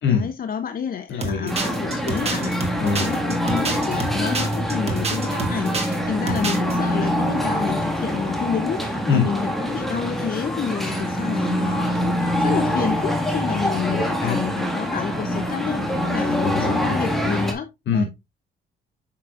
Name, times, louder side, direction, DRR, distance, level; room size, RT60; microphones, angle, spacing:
voice 1, 0.1-17.7 17.9-18.0, left 7 dB, 45° left, 0.6 m, -29 dB
voice 2, 1.1-1.6 2.8-3.1 9.1-9.3 14.2-14.4 16.4-17.1 17.9-18.1, left 5 dB, 70° left, 2.4 m, -23 dB
sound 1, 1.2-6.0 6.3-6.7, right 3 dB, 30° right, 1.8 m, -28 dB
sound 2, 1.5-17.5, equal, ahead, 1.7 m, -24 dB
7.6 x 5.9 x 2.4 m
cardioid pair, 90°, 20 cm